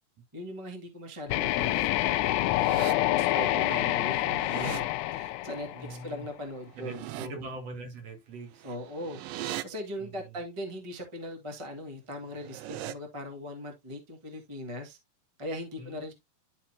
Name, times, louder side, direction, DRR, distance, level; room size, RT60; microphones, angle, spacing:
voice 1, 0.3-2.5 3.0-7.4 8.6-9.2 9.6-15.0 15.4-16.1, left 1 dB, 20° right, 0.7 m, -39 dB
sound 1, 1.3-6.2, left 16 dB, 80° left, 1.9 m, -27 dB
sound 2, 1.3-1.9 2.3-2.9 4.1-4.8 6.6-7.3 8.5-9.6 12.2-12.9, right 14 dB, 80° right, 2.2 m, -40 dB
voice 2, 5.7-6.3 6.8-8.6 10.0-10.1 15.8-16.0, right 2 dB, 55° right, 2.8 m, -42 dB
12.5 x 4.4 x 2.7 m
omnidirectional pair, 3.9 m